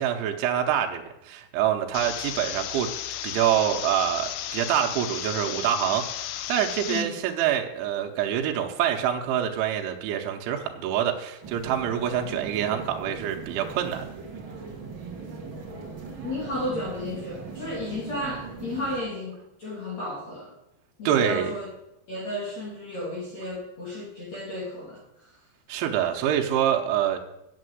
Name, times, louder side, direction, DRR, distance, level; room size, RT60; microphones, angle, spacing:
voice 1, 0.0-2.9 3.2-14.0 21.1-21.5 25.7-27.2, right 10 dB, 85° right, 2 dB, 3.3 m, -26 dB
sound 1, 1.9-7.0, left 12 dB, 85° left, 2.7 m, -34 dB
sound 2, 11.4-19.0, right 4 dB, 50° right, 1.4 m, -39 dB
voice 2, 16.2-20.5 21.0-21.7 22.1-25.4, left 1 dB, 40° left, -6 dB, 3.4 m, -33 dB
8.8 x 7.5 x 7.9 m, 0.86 s
omnidirectional pair, 5.4 m